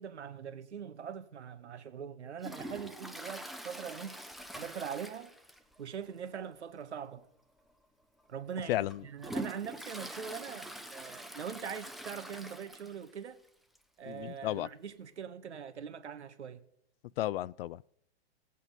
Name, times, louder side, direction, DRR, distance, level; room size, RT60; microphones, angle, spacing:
voice 1, 0.0-4.2 4.6-5.3 5.8-7.2 8.3-13.4 14.0-16.6, right 7 dB, 85° right, 1.4 m, -42 dB
Toilet flush, 2.4-5.8 6.1-6.2 6.7-6.8 7.6-7.7 8.3-13.2 13.5-13.6 13.8-13.9 14.9-15.0, right 1 dB, ahead, 0.7 m, -44 dB
voice 2, 14.1-14.7 17.2-17.9, left 14 dB, 60° left, 0.5 m, -33 dB
17.0 x 8.3 x 5.3 m
hypercardioid pair, 120°, 33 cm